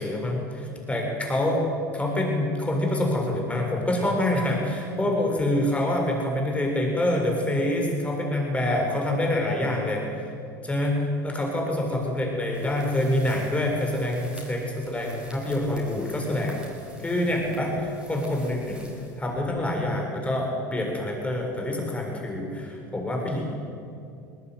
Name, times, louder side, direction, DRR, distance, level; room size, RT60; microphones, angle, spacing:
voice 1, 0.0-1.6 1.9-10.3 10.6-11.0 11.2-16.6 17.0-18.8 19.2-23.4, left 1 dB, 10° left, 0 dB, 7.2 m, -26 dB
sound 1, 12.5-19.7, equal, 10° right, 7.2 m, -49 dB
21.5 x 19.0 x 9.7 m, 2.5 s
hypercardioid pair, 80°, 10 cm